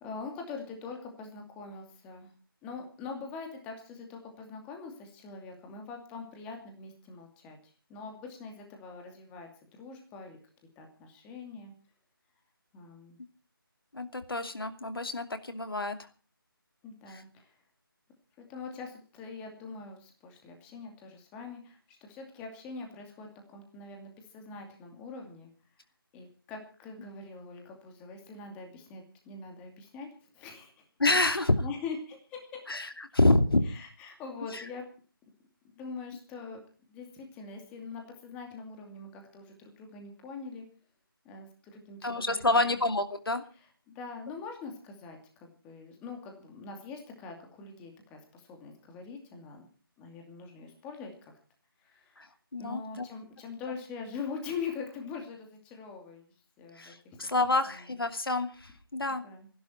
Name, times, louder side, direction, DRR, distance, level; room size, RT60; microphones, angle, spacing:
voice 1, 0.0-2.3 2.6-7.6 7.9-10.4 10.8-11.7 12.7-13.2 16.8-17.6 18.4-25.5 26.1-30.8 31.3-32.6 33.6-34.9 35.7-36.6 36.9-40.6 41.2-42.7 43.9-49.7 50.0-51.3 51.8-52.3 52.6-56.2 56.6-57.2 57.7-58.0 59.2-59.5, left 4 dB, 10° left, 3 dB, 2.5 m, -43 dB
voice 2, 13.9-16.0 17.1-17.2 31.0-31.6 32.7-33.7 34.5-34.6 42.0-43.4 52.2-52.3 52.5-53.0 56.8-59.2, left 2 dB, 75° left, 8 dB, 2.7 m, -28 dB
25.5 x 11.5 x 4.5 m, 0.38 s
figure-of-eight pair, 165°, 12 cm